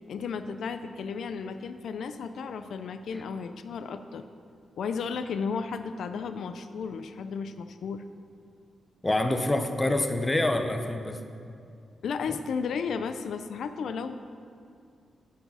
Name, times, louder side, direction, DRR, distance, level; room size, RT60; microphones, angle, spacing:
voice 1, 0.1-4.2 4.8-8.0 12.0-14.2, left 5 dB, 70° left, 9 dB, 0.4 m, -34 dB
voice 2, 9.0-11.2, left 1 dB, 15° left, 6 dB, 0.5 m, -26 dB
12.0 x 4.7 x 5.5 m, 2.4 s
wide cardioid pair, 160°, 0 cm